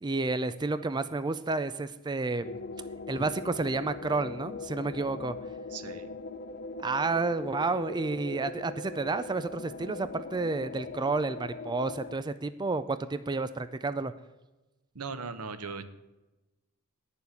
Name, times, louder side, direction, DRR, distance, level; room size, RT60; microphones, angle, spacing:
voice 1, 0.0-2.5 3.1-5.4 6.8-14.1, right 3 dB, 20° right, 12 dB, 0.4 m, -30 dB
sound 1, 2.4-12.1, left 3 dB, 45° left, 0.5 m, -41 dB
voice 2, 5.7-6.1 14.9-15.8, right 4 dB, 85° right, 10 dB, 1.0 m, -38 dB
9.4 x 7.0 x 8.3 m, 1.1 s
head